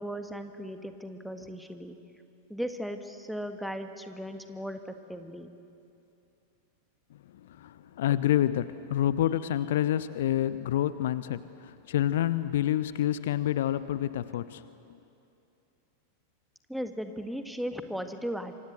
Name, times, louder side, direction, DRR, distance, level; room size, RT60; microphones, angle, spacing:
voice 1, 0.0-2.0 2.5-5.5 16.7-18.5, equal, ahead, 7 dB, 1.7 m, -37 dB
voice 2, 7.1-14.7, left 12 dB, 55° left, 15 dB, 0.7 m, -28 dB
27.5 x 25.0 x 7.9 m, 2.7 s
figure-of-eight pair, 90°, 0 cm